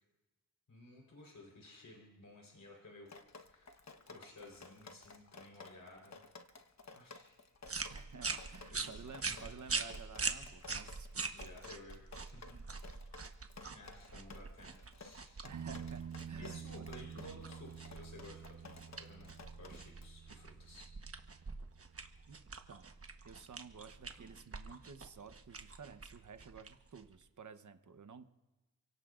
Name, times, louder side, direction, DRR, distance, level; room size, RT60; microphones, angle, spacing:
voice 1, 0.7-3.1 3.4-3.8 4.1-6.2 6.9-7.4 8.7-9.5 11.3-12.6 13.7-15.4 16.4-20.9, left 2 dB, 70° left, 0 dB, 4.1 m, -55 dB
Drip, 3.1-20.1, left 4 dB, 50° left, 1.1 m, -55 dB
sound 1, 7.6-27.2, right 4 dB, 40° right, 1.2 m, -44 dB
voice 2, 7.9-11.4 15.4-17.4 22.3-22.9 23.2-28.2, right 5 dB, 60° right, 9 dB, 1.0 m, -53 dB
sound 2, 15.5-23.1 26.2-26.3, right 8 dB, 85° right, 0.9 m, -50 dB
28.5 x 17.5 x 2.5 m, 1.2 s
cardioid pair, 60°, 34 cm